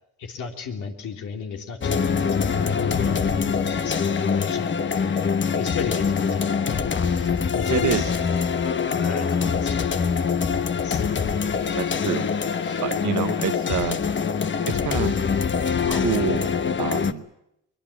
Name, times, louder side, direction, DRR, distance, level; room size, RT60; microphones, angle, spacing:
voice 1, 0.2-6.8 7.2-8.6 8.9-10.1 10.4-11.1 12.6-13.3, left 6 dB, 80° left, 3 dB, 3.4 m, -35 dB
sound 1, 1.8-17.1, left 6 dB, 40° left, 1.2 m, -24 dB
voice 2, 7.7-8.0 11.7-12.3 12.8-14.0 14.7-15.1 15.9-16.5 16.8-17.3, right 11 dB, 75° right, 11 dB, 1.3 m, -27 dB
23.5 x 21.0 x 8.5 m, 0.80 s
cardioid pair, 90°, 30 cm